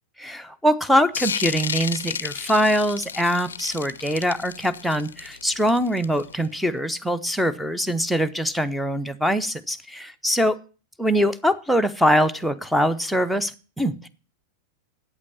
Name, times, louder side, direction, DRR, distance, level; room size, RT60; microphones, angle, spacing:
voice 1, 0.2-10.6 11.0-14.1, equal, ahead, 6 dB, 0.8 m, -23 dB
sound 1, 1.1-6.5, left 7 dB, 70° left, 0.5 m, -32 dB
8.5 x 8.3 x 7.1 m, 0.36 s
figure-of-eight pair, 90°, 0 cm